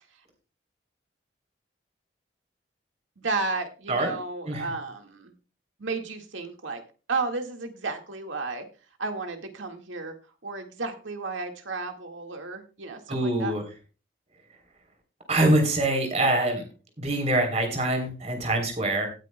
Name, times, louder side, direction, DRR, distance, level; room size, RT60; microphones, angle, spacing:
voice 1, 3.2-5.3 5.8-6.8 7.1-8.7 9.0-10.1 10.4-13.5, right 3 dB, 85° right, 4 dB, 1.8 m, -33 dB
voice 2, 13.1-13.6 15.3-16.6 17.0-19.1, right 1 dB, 35° right, 4 dB, 3.3 m, -24 dB
18.0 x 9.3 x 2.2 m, 0.33 s
head